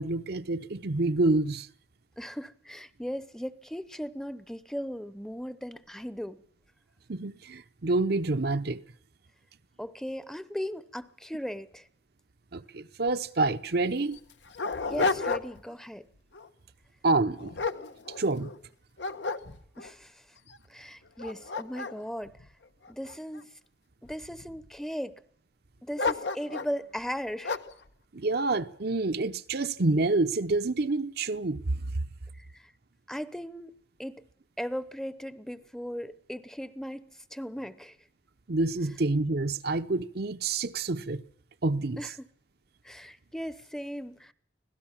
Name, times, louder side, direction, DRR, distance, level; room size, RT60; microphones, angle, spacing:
voice 1, 0.0-1.7 7.1-8.8 12.5-14.2 17.0-17.6 18.2-18.5 28.1-31.6 38.5-41.2 41.6-42.0, right 2 dB, 60° right, 0.8 m, -27 dB
voice 2, 2.2-6.4 9.8-11.9 14.9-16.1 19.8-20.3 20.7-22.5 22.9-23.6 24.0-25.2 25.8-27.6 32.3-32.7 33.1-33.7 34.0-34.3 34.6-38.0 42.0-42.3 42.8-44.3, equal, 5° left, 0.8 m, -37 dB
Dog, 13.1-13.2 13.4-13.5 14.1-15.7 16.2-16.5 17.1-18.6 19.0-19.9 20.5-20.6 21.1-23.4 24.0-24.7 26.0-26.8 27.4-27.8, left 4 dB, 75° left, 1.2 m, -32 dB
25.0 x 17.5 x 7.3 m
head